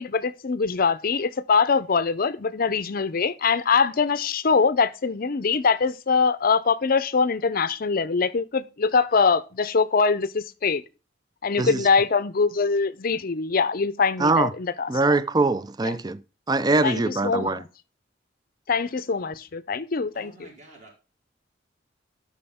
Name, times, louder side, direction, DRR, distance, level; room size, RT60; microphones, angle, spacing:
voice 1, 0.0-10.8 11.4-14.9 15.8-15.9 16.8-17.5 18.7-20.3, left 5 dB, 50° left, 0.6 m, -23 dB
voice 2, 14.2-14.5 14.9-16.2 16.5-17.6, right 3 dB, 20° right, 0.5 m, -22 dB
voice 3, 20.1-21.0, right 2 dB, 40° right, 3.6 m, -48 dB
11.0 x 6.2 x 3.5 m
head